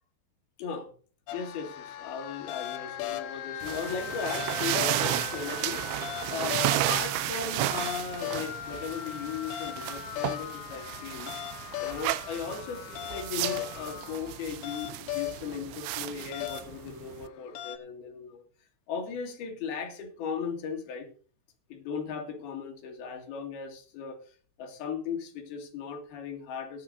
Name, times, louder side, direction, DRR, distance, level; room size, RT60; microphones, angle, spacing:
voice 1, 0.6-0.9 1.3-11.4 11.8-18.4 18.9-21.1 21.7-26.8, left 6 dB, 60° left, 3 dB, 3.7 m, -37 dB
sound 1, 1.3-17.8, left 13 dB, 85° left, 3.3 m, -38 dB
sound 2, 3.6-17.3, right 14 dB, 85° right, 3.0 m, -33 dB
18.0 x 11.0 x 2.6 m, 0.41 s
omnidirectional pair, 5.3 m